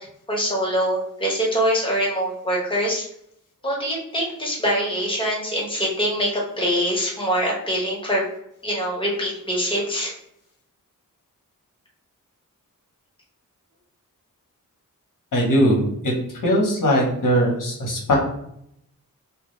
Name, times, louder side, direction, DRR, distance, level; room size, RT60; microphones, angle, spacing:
voice 1, 0.3-3.1 3.6-8.2 8.6-10.1, equal, 15° left, -3 dB, 1.0 m, -24 dB
voice 2, 15.3-16.1 16.4-18.2, equal, 65° left, -1 dB, 1.0 m, -20 dB
2.3 x 2.2 x 3.1 m, 0.73 s
wide cardioid pair, 80°, 34 cm